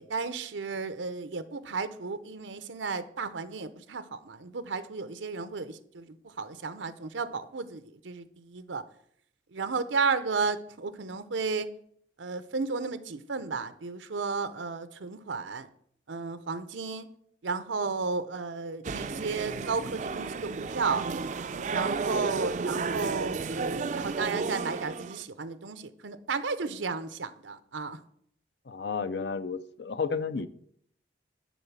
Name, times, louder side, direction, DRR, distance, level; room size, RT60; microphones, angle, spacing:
voice 1, 0.0-8.8 9.5-11.7 12.2-15.7 16.1-17.1 17.4-21.1 21.5-28.0, right 4 dB, 90° right, 12 dB, 0.7 m, -33 dB
sound 1, 18.8-25.2, right 4 dB, 40° right, 0.4 m, -33 dB
voice 2, 28.7-30.5, left 5 dB, 65° left, 13 dB, 0.6 m, -32 dB
10.0 x 4.1 x 7.2 m, 0.68 s
head